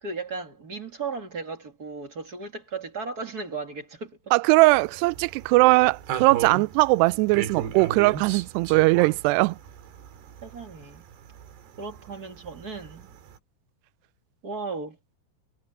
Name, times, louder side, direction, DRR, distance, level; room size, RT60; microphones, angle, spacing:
voice 1, 0.0-4.3 10.4-11.1 11.8-13.1 14.4-15.0, right 4 dB, 35° right, 1.5 m, -36 dB
voice 2, 4.3-9.6, right 23 dB, 85° right, 2.5 m, -20 dB
sound 1, 4.7-13.4, right 9 dB, 65° right, 4.0 m, -37 dB
omnidirectional pair, 5.2 m